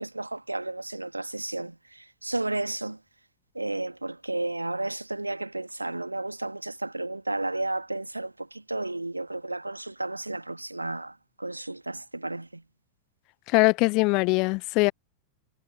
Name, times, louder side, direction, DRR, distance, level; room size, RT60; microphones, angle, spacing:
voice 1, 0.0-3.0 3.6-12.6, right 2 dB, 85° right, 2.0 m, -33 dB
voice 2, 13.5-14.9, left 27 dB, 40° left, 0.3 m, -22 dB
figure-of-eight pair, 90°, 0 cm